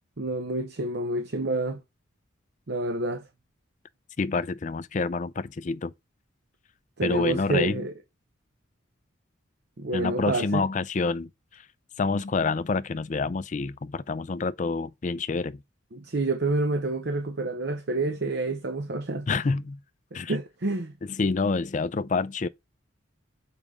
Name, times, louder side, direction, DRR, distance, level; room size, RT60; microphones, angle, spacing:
voice 1, 0.2-1.8 2.7-3.2 7.0-7.9 9.8-10.7 15.9-19.3 20.1-20.9, right 2 dB, 55° right, 0.7 m, -28 dB
voice 2, 4.2-5.9 7.0-7.8 9.9-11.3 12.0-15.6 19.3-19.8 20.1-20.3 21.2-22.5, left 4 dB, 35° left, 0.4 m, -27 dB
7.1 x 4.9 x 3.6 m
head